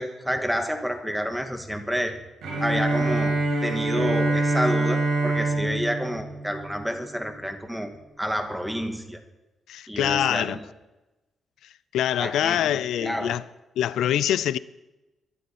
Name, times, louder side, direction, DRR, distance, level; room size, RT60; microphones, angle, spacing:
voice 1, 0.0-2.2 2.6-7.9 8.2-9.2 9.9-10.6 12.2-13.4, equal, 5° right, 2.0 m, -29 dB
Bowed string instrument, 2.4-7.4, right 2 dB, 85° right, 5.3 m, -25 dB
voice 2, 9.7-10.6 11.9-13.4 13.8-14.6, left 11 dB, 90° left, 0.5 m, -24 dB
22.5 x 12.0 x 4.4 m
cardioid pair, 105°, 0 cm